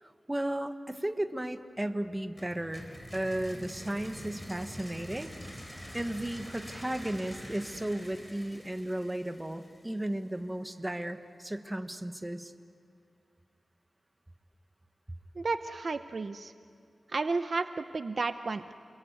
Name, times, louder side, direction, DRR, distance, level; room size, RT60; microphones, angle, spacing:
voice 1, 0.0-2.8 3.1-5.3 5.9-12.5, right 1 dB, 15° right, 7 dB, 1.3 m, -34 dB
sound 1, 2.4-10.1, equal, 5° left, 4.2 m, -46 dB
voice 2, 15.4-16.5 17.1-18.7, right 3 dB, 50° right, 10 dB, 0.7 m, -32 dB
29.0 x 22.0 x 9.4 m, 2.3 s
wide cardioid pair, 120°, 0 cm